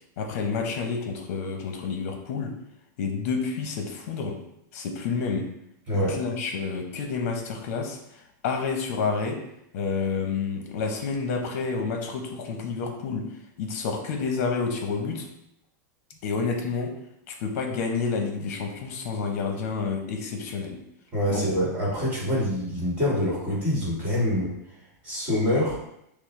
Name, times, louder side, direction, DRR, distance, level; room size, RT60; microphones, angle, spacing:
voice 1, 0.2-2.5 3.0-4.4 4.7-5.5 5.9-9.4 9.7-13.3 13.6-15.3 16.2-17.0 17.3-20.8 21.3-21.5, left 5 dB, 50° left, 3 dB, 0.8 m, -29 dB
voice 2, 21.1-24.5 25.0-25.8, left 1 dB, 15° right, -6 dB, 1.4 m, -25 dB
6.0 x 2.0 x 3.2 m, 0.78 s
supercardioid pair, 175°, 10 cm